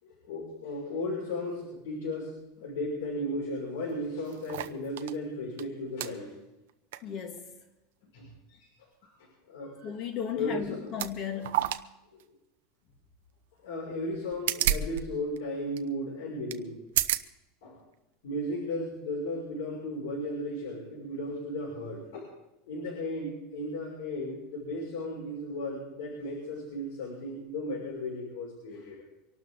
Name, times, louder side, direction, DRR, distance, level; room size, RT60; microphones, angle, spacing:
voice 1, 0.0-2.3 2.6-6.3 8.1-8.6 9.0-9.9 10.3-10.9 12.1-12.2 13.6-16.8 17.6-17.8 18.2-22.3 22.6-29.0, left 1 dB, 80° left, 6.3 m, -35 dB
sound 1, 3.5-3.6 3.8-5.2 5.6-5.7 6.0-6.1 6.7-7.0 7.3-7.4 10.1-10.3 10.9-11.1 11.4-11.8 12.2-12.3 14.1-15.0 15.3-15.4 15.8-15.9 16.5-16.6 16.9-17.3 17.9-18.0, right 12 dB, 80° right, 0.8 m, -30 dB
voice 2, 7.0-7.5 9.8-11.8, left 7 dB, 35° left, 1.8 m, -36 dB
24.5 x 12.5 x 3.9 m
supercardioid pair, 175°, 0 cm